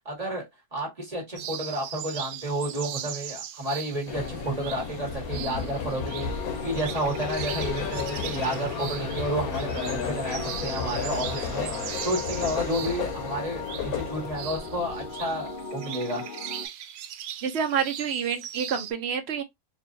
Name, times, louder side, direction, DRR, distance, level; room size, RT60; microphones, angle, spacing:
voice 1, 0.0-0.4 0.7-6.3 6.6-11.7 12.0-16.2, right 1 dB, 25° right, 1.5 m, -31 dB
sound 1, 1.4-18.9, right 10 dB, 90° right, 1.1 m, -39 dB
sound 2, 4.1-15.5, left 6 dB, 75° left, 1.2 m, -33 dB
sound 3, 6.0-16.7, left 3 dB, 55° left, 0.6 m, -39 dB
voice 2, 17.4-19.4, right 7 dB, 55° right, 0.8 m, -28 dB
4.4 x 2.6 x 2.5 m
omnidirectional pair, 1.6 m